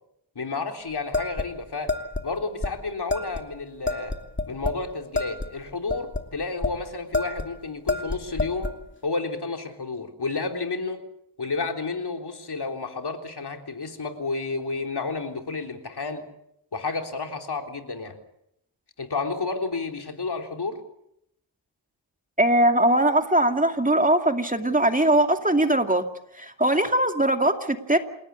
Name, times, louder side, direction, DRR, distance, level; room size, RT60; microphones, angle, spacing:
voice 1, 0.4-1.9 2.2-4.2 4.5-8.7 9.0-11.0 11.4-16.2 16.7-18.2 19.0-20.8, left 3 dB, 55° left, 4 dB, 3.8 m, -31 dB
sound 1, 1.1-2.3 2.6-2.7 3.1-3.4 3.9-4.8 5.1-6.8 7.1-7.5 7.9-8.8, left 3 dB, 25° left, 2.8 m, -28 dB
voice 2, 22.4-26.0 26.4-28.0, right 1 dB, 15° right, 5 dB, 2.4 m, -21 dB
28.5 x 17.5 x 8.5 m, 0.77 s
wide cardioid pair, 65°, 46 cm